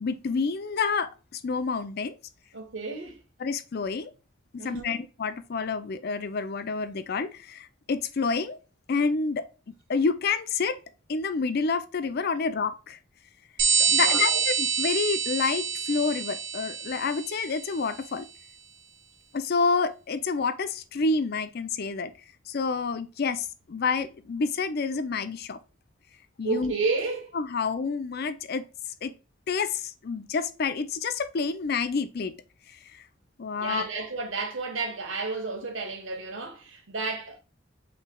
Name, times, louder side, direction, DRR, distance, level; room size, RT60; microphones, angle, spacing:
voice 1, 0.0-2.2 3.4-4.1 4.5-8.6 8.9-10.8 11.1-13.0 13.8-18.3 19.3-22.1 22.5-25.6 26.4-26.7 27.3-28.7 29.0-29.1 29.5-32.3 32.7-33.0 33.4-33.8, left 4 dB, 55° left, 0.5 m, -28 dB
voice 2, 2.5-3.2 4.6-5.0 13.9-14.4 26.4-27.3 33.6-37.4, right 3 dB, 85° right, 1.3 m, -32 dB
sound 1, 13.6-17.9, right 6 dB, 55° right, 1.1 m, -27 dB
5.5 x 3.3 x 2.3 m
head